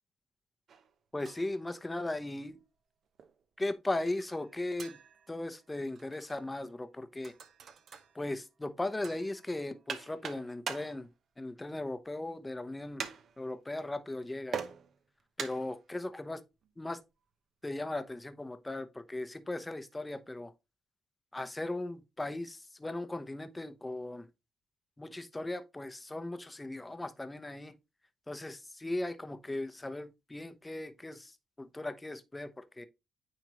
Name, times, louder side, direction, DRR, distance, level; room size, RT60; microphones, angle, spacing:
sound 1, 0.7-0.9 1.2-2.0 3.2-3.4 4.1-5.7 6.0-6.6 7.2-8.4 9.0-11.1 11.6-11.7 12.0-12.1 13.0-13.5 14.5-15.9 16.6-16.7, right 7 dB, 60° right, 0.8 m, -44 dB
voice 1, 1.1-2.6 3.6-5.0 5.3-7.3 8.1-11.1 11.4-13.0 13.4-14.6 15.4-16.4 16.8-17.0 17.6-20.5 21.3-24.3 25.0-27.7 28.3-32.9, left 2 dB, 15° left, 0.8 m, -38 dB
9.2 x 3.5 x 3.1 m
cardioid pair, 90°, 0 cm